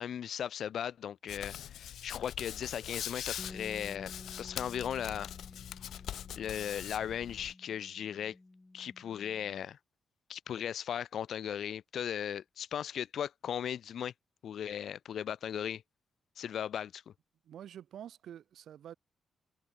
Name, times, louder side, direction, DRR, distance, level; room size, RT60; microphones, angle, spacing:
voice 1, 0.0-5.3 6.3-8.4 8.7-9.8 10.3-14.1 14.4-15.8 16.4-17.0, left 9 dB, 65° left, 0.9 m, -37 dB
Hands, 1.3-7.5, left 11 dB, 85° left, 1.5 m, -43 dB
Bass guitar, 3.4-9.6, left 2 dB, 15° left, 2.0 m, -52 dB
voice 2, 17.4-19.0, right 10 dB, 75° right, 2.8 m, -47 dB
wide cardioid pair, 140°, 0 cm